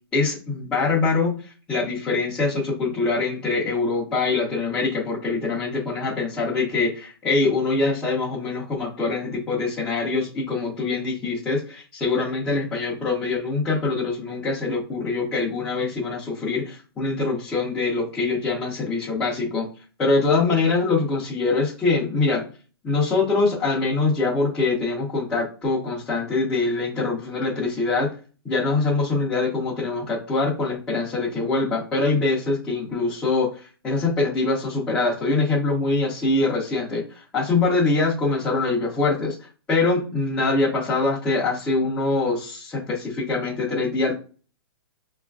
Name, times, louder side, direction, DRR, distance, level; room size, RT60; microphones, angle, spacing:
voice 1, 0.1-19.7 20.0-22.5 22.8-28.1 28.4-44.1, left 3 dB, 5° left, -9 dB, 0.4 m, -24 dB
5.2 x 2.3 x 2.2 m, 0.37 s
hypercardioid pair, 175°, 13 cm